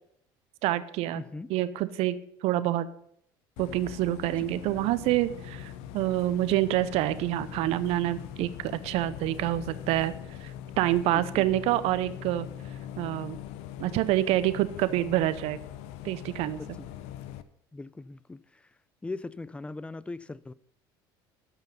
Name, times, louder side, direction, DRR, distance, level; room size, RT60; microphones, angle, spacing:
voice 1, 0.6-1.2 1.5-2.9 3.6-10.1 10.4-10.5 10.8-12.5 13.0-13.4 13.8-15.6 16.0-16.8, right 14 dB, 65° right, 0.7 m, -27 dB
voice 2, 1.2-1.5 11.1-11.5 17.7-18.4 19.0-20.5, left 3 dB, 10° left, 0.4 m, -39 dB
Bus, 3.6-17.4, left 10 dB, 70° left, 0.7 m, -42 dB
12.5 x 5.8 x 5.5 m
hypercardioid pair, 70°, 11 cm